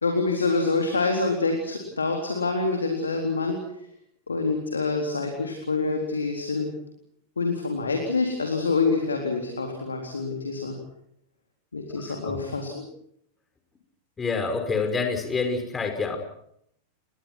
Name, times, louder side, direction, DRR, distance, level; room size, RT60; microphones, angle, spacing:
voice 1, 0.0-3.6 4.3-6.7 7.4-10.7 11.7-12.9, left 3 dB, 75° left, 3 dB, 3.8 m, -26 dB
voice 2, 11.9-12.4 14.2-16.2, left 4 dB, 15° left, 6 dB, 5.9 m, -27 dB
29.5 x 22.5 x 6.2 m, 0.72 s
figure-of-eight pair, 90°, 0 cm